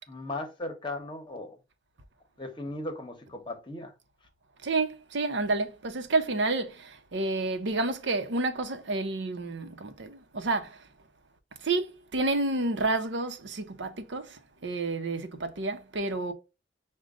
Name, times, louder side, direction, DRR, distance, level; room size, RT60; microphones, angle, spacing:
voice 1, 0.1-1.6 2.4-3.9, left 2 dB, 25° left, 0.9 m, -37 dB
voice 2, 4.6-10.8 11.6-11.9 12.1-14.3 14.6-16.3, right 3 dB, 75° right, 0.7 m, -29 dB
6.2 x 2.2 x 3.7 m
head